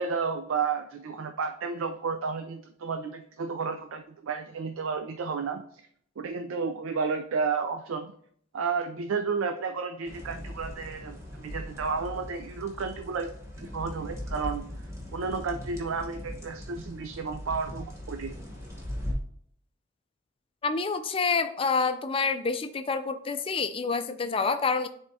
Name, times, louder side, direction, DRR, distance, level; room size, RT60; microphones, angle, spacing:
voice 1, 0.0-5.6 6.2-8.1 8.5-13.3 13.6-14.7 15.1-18.3, right 5 dB, 75° right, 7 dB, 0.4 m, -32 dB
sound 1, 10.0-19.1, left 1 dB, 15° right, 1.1 m, -39 dB
voice 2, 20.6-24.9, left 4 dB, 25° left, 9 dB, 0.4 m, -27 dB
10.5 x 3.5 x 2.7 m, 0.63 s
head